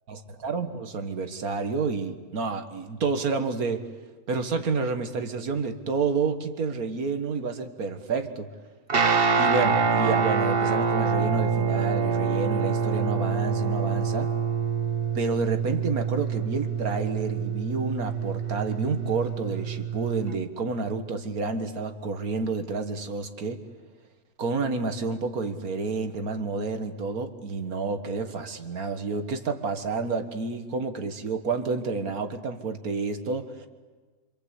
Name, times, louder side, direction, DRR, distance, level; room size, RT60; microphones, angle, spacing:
voice 1, 0.1-3.9 4.3-8.5 9.4-14.3 15.1-23.6 24.4-33.7, right 4 dB, 85° right, 8 dB, 2.0 m, -29 dB
Guitar, 8.9-20.3, right 6 dB, 45° right, 1.3 m, -26 dB
26.0 x 25.0 x 8.3 m, 1.3 s
omnidirectional pair, 1.5 m